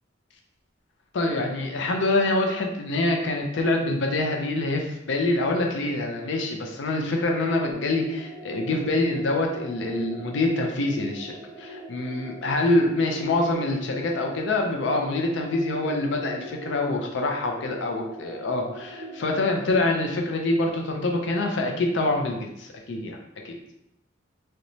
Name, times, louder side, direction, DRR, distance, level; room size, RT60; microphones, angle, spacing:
voice 1, 1.1-23.2 23.4-23.6, left 2 dB, 65° left, 2 dB, 0.4 m, -25 dB
sound 1, 7.7-19.6, right 1 dB, 65° right, 0.5 m, -42 dB
2.9 x 2.1 x 2.6 m, 0.83 s
head